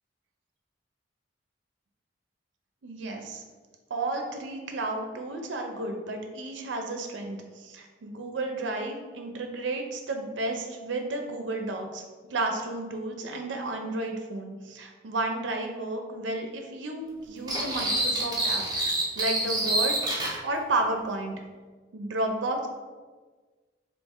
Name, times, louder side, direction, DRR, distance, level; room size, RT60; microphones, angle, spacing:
voice 1, 2.8-3.4 3.9-12.0 12.3-21.4 21.9-22.7, right 2 dB, 75° right, 3 dB, 0.5 m, -32 dB
sound 1, 17.5-20.4, right 1 dB, 20° right, 0.5 m, -27 dB
3.1 x 2.7 x 3.5 m, 1.4 s
head